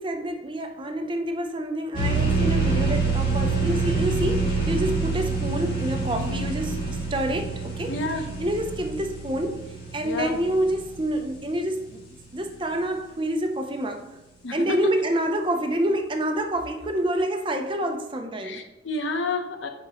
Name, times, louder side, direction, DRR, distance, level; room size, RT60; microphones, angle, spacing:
voice 1, 0.0-9.7 9.9-12.0 12.3-14.1 14.5-18.6, right 1 dB, 25° right, 0.6 m, -27 dB
sound 1, 1.9-11.4, right 3 dB, 45° left, 2.5 m, -26 dB
voice 2, 7.9-8.2 10.0-10.3 14.4-14.9 18.4-19.7, left 3 dB, 80° left, 0.8 m, -29 dB
8.6 x 5.0 x 3.0 m
head